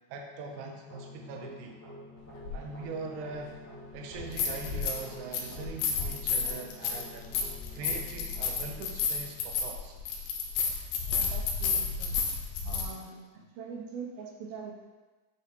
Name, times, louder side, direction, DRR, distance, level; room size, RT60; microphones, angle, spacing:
voice 1, 0.1-1.7 2.5-3.5 3.9-7.4 7.7-10.0, right 4 dB, 75° right, 2 dB, 1.9 m, -41 dB
sound 1, 0.9-9.9, left 1 dB, 10° left, 0.8 m, -49 dB
sound 2, 2.4-2.5 4.1-5.0 5.3-12.8, left 5 dB, 85° left, 2.4 m, -31 dB
voice 2, 11.1-12.2 12.7-13.2 13.6-14.7, right 5 dB, 90° right, 0 dB, 2.8 m, -42 dB
8.6 x 3.4 x 4.5 m, 1.2 s
omnidirectional pair, 4.1 m